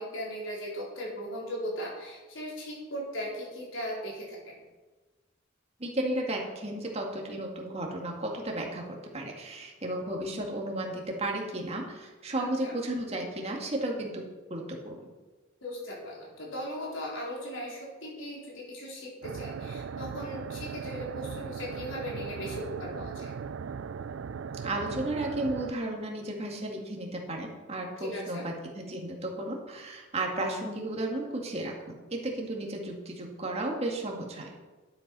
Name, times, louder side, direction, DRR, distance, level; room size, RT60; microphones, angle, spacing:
voice 1, 0.0-4.6 12.6-12.7 15.6-23.3 28.0-28.4, equal, 75° left, -4 dB, 4.4 m, -38 dB
voice 2, 5.8-8.9 9.1-14.2 14.5-15.1 24.6-34.5, right 1 dB, 35° right, 0 dB, 2.1 m, -34 dB
sound 1, 19.2-25.7, right 6 dB, 75° right, 0.4 m, -38 dB
11.5 x 8.2 x 5.5 m, 1.2 s
head